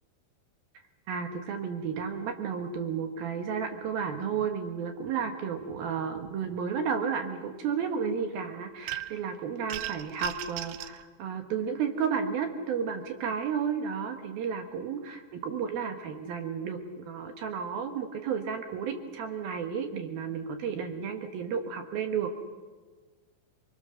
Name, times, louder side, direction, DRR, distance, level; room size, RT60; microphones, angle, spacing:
voice 1, 1.1-22.4, right 6 dB, 65° right, 6 dB, 2.7 m, -32 dB
sound 1, 8.9-9.3 9.7-11.0, right 14 dB, 85° right, 2.1 m, -37 dB
28.0 x 22.0 x 6.5 m, 1.4 s
omnidirectional pair, 5.3 m